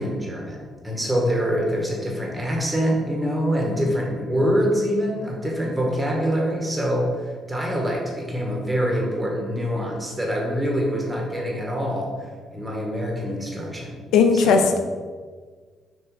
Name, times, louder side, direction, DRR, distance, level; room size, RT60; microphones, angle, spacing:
voice 1, 0.0-12.1 12.5-14.0 14.3-14.7, equal, 15° right, -1 dB, 1.6 m, -25 dB
voice 2, 14.1-14.8, left 5 dB, 85° left, 5 dB, 0.6 m, -17 dB
6.3 x 3.1 x 4.8 m, 1.5 s
cardioid pair, 90°, 0 cm